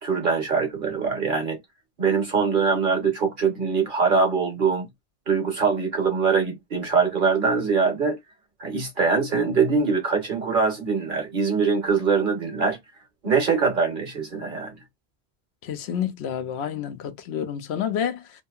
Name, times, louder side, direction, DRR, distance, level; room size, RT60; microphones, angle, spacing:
voice 1, 0.0-1.6 2.0-4.9 5.3-8.2 8.6-12.8 13.2-14.7, right 5 dB, 55° right, 1.1 m, -23 dB
voice 2, 15.6-18.4, left 8 dB, 85° left, 0.9 m, -29 dB
2.7 x 2.7 x 2.4 m
omnidirectional pair, 1.1 m